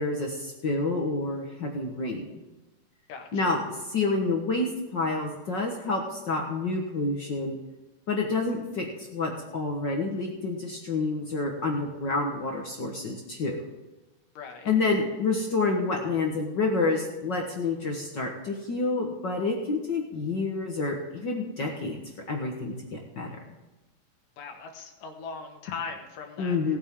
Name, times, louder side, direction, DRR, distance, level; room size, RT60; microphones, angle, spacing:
voice 1, 0.0-2.4 3.3-7.6 8.1-13.6 14.6-22.0 22.3-23.4 26.4-26.8, left 3 dB, 55° left, 1 dB, 1.3 m, -28 dB
voice 2, 3.1-3.5 14.4-14.7 24.4-26.6, left 5 dB, 80° left, 3 dB, 3.1 m, -39 dB
18.0 x 8.9 x 3.7 m, 1.1 s
omnidirectional pair, 3.8 m